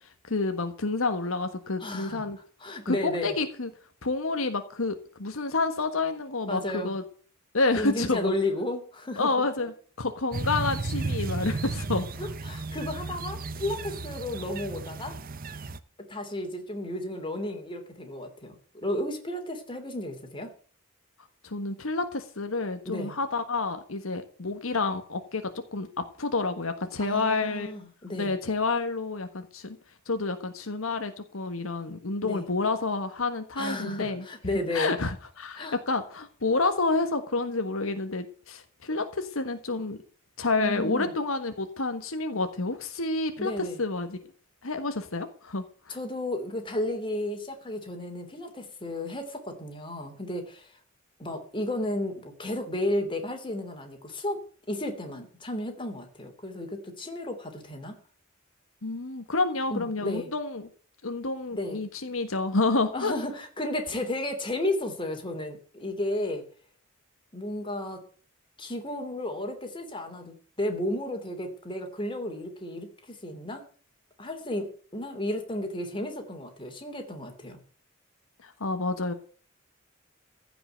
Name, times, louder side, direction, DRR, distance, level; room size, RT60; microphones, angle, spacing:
voice 1, 0.3-2.4 2.8-3.7 4.0-7.0 7.5-8.3 9.2-12.1 21.4-27.8 28.1-29.8 30.1-34.2 34.7-40.0 40.4-44.2 44.6-46.0 58.8-60.7 61.0-63.1 78.4-79.1, left 3 dB, 80° left, 7 dB, 1.4 m, -29 dB
voice 2, 1.8-2.3 2.6-3.3 6.5-6.9 7.8-9.4 12.2-15.2 16.1-20.5 22.8-23.1 27.0-28.4 32.2-32.5 33.6-34.9 35.6-35.8 40.6-41.1 43.4-43.8 45.9-50.7 51.2-54.4 54.7-58.0 59.7-60.3 61.5-61.8 62.9-66.5 67.3-68.0 68.6-73.6 74.2-77.6, left 1 dB, 25° left, 4 dB, 3.1 m, -33 dB
sound 1, 10.3-15.8, right 3 dB, 45° right, 0.8 m, -34 dB
15.5 x 6.0 x 9.1 m, 0.43 s
head